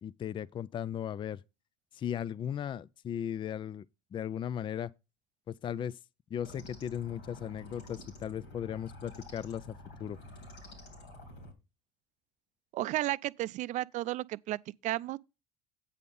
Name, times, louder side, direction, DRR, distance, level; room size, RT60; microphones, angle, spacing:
voice 1, 0.0-1.4 1.9-3.9 4.1-4.9 5.5-6.0 6.3-10.2, left 9 dB, 35° left, 0.4 m, -37 dB
sound 1, 6.4-11.5, left 1 dB, 85° left, 2.8 m, -49 dB
voice 2, 12.7-15.2, right 16 dB, 55° right, 0.4 m, -33 dB
8.5 x 5.2 x 5.5 m
hypercardioid pair, 75°, 15 cm